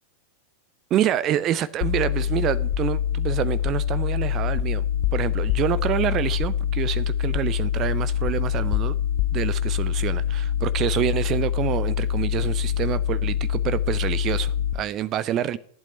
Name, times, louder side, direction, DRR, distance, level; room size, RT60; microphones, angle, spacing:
voice 1, 0.9-4.8 5.1-9.0 9.3-15.6, right 11 dB, 35° right, 0.7 m, -27 dB
sound 1, 1.8-14.7, left 9 dB, 50° left, 0.9 m, -25 dB
14.5 x 8.4 x 9.7 m
figure-of-eight pair, 90°, 0 cm